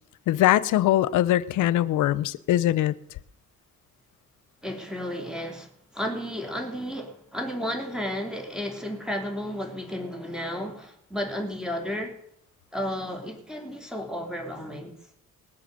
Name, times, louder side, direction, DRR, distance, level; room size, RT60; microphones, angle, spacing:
voice 1, 0.3-2.9, left 13 dB, 80° left, 0.7 m, -22 dB
voice 2, 4.6-12.2 12.7-14.9, equal, ahead, 3.3 m, -33 dB
20.0 x 7.9 x 6.7 m
cardioid pair, 90°, 30 cm